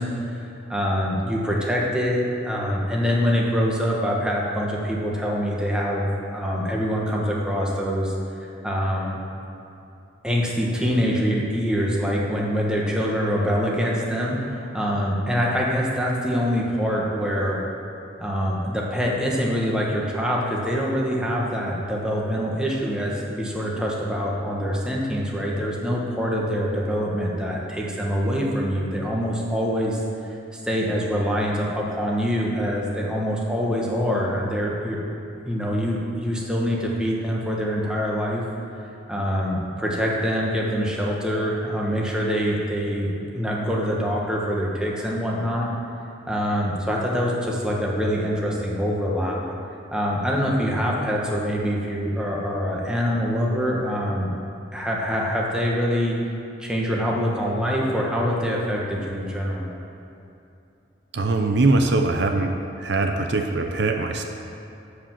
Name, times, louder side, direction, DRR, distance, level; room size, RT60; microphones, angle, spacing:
voice 1, 0.0-8.1 8.6-9.2 10.2-17.7 18.2-30.0 30.6-35.0 35.4-38.4 39.1-45.7 46.3-49.4 49.9-54.3 54.7-56.2 56.6-59.7, equal, 5° right, -3 dB, 1.3 m, -25 dB
voice 2, 61.1-62.5 62.8-64.2, right 2 dB, 65° right, 4 dB, 0.6 m, -21 dB
12.0 x 5.0 x 7.4 m, 2.8 s
head